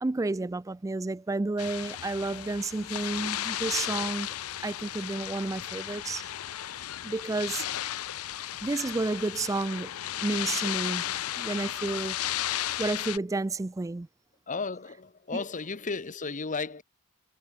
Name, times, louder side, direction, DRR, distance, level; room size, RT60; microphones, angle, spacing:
voice 1, 0.0-4.3 4.6-6.3 7.0-7.7 8.6-9.9 10.2-12.2 12.8-14.1 15.3-15.4, right 2 dB, 15° right, 0.3 m, -31 dB
sound 1, 1.6-13.2, left 12 dB, 90° left, 0.6 m, -34 dB
voice 2, 14.5-16.8, left 4 dB, 35° left, 1.0 m, -34 dB
head